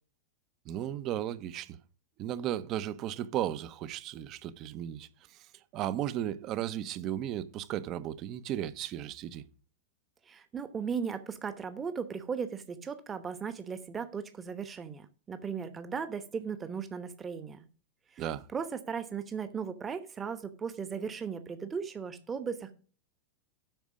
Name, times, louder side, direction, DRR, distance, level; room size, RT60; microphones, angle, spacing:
voice 1, 0.7-1.8 2.2-5.1 5.7-9.4 18.2-18.5, right 11 dB, 40° right, 0.8 m, -35 dB
voice 2, 10.2-17.7 18.1-18.3 18.5-22.7, right 6 dB, 20° right, 1.0 m, -37 dB
9.1 x 6.2 x 5.1 m
hypercardioid pair, 95°, 0 cm